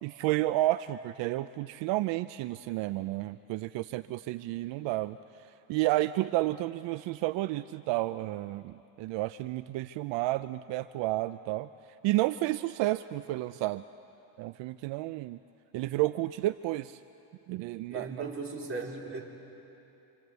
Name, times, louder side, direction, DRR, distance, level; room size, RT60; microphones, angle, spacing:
voice 1, 0.0-5.2 5.7-11.7 12.0-13.8 14.4-15.4 15.7-17.0 17.5-18.2, right 17 dB, 75° right, 13 dB, 0.6 m, -31 dB
voice 2, 17.9-19.2, right 3 dB, 30° right, -2 dB, 4.1 m, -37 dB
27.5 x 27.0 x 8.2 m, 3.0 s
cardioid pair, 130°, 44 cm